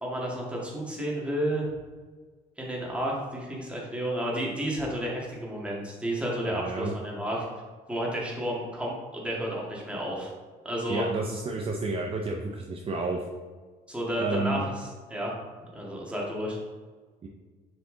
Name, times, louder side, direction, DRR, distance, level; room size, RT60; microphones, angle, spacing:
voice 1, 0.0-1.7 2.6-7.5 7.9-10.3 10.6-11.1 13.9-14.8 15.1-15.3 15.7-16.6, right 1 dB, 5° right, -4 dB, 1.9 m, -31 dB
voice 2, 6.5-6.9 10.9-13.3 14.2-14.6 17.2-17.3, right 2 dB, 35° right, 1 dB, 0.7 m, -31 dB
6.7 x 4.6 x 3.9 m, 1.4 s
cardioid pair, 110°, 17 cm